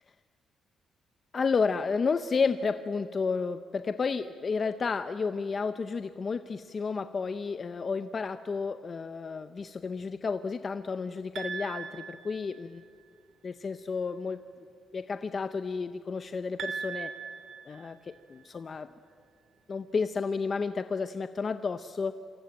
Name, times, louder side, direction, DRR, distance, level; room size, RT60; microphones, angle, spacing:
voice 1, 1.3-12.8 13.4-14.4 14.9-17.1 17.7-18.9 19.7-22.1, left 5 dB, 30° left, 10 dB, 0.6 m, -31 dB
sound 1, 11.4-13.0 16.6-18.6, right 6 dB, 50° right, 2.6 m, -40 dB
27.5 x 25.0 x 8.7 m, 2.2 s
cardioid pair, 180°, 0 cm